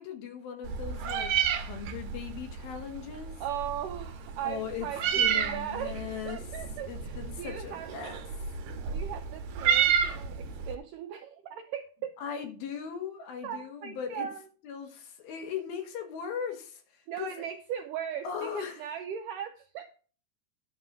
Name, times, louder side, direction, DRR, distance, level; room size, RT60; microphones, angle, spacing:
voice 1, 0.0-3.4 4.4-4.9 5.2-6.4 6.8-8.2 12.2-14.3 14.6-17.3 18.2-18.8, left 7 dB, 70° left, 2.9 m, -38 dB
Meow, 0.6-10.8, right 7 dB, 70° right, 2.5 m, -31 dB
voice 2, 3.4-7.9 8.9-12.1 13.4-14.4 17.1-19.9, right 9 dB, 85° right, 1.9 m, -38 dB
11.0 x 3.8 x 7.1 m
omnidirectional pair, 4.6 m